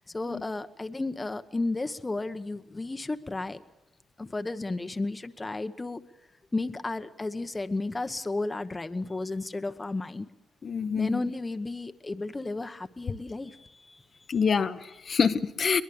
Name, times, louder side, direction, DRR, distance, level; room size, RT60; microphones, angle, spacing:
voice 1, 0.0-3.6 4.2-6.0 6.5-10.3 11.0-14.0, left 2 dB, 20° left, 1.0 m, -33 dB
voice 2, 10.6-11.2 14.3-15.8, left 6 dB, 50° left, 1.0 m, -26 dB
23.0 x 20.5 x 7.0 m
cardioid pair, 85°, 0 cm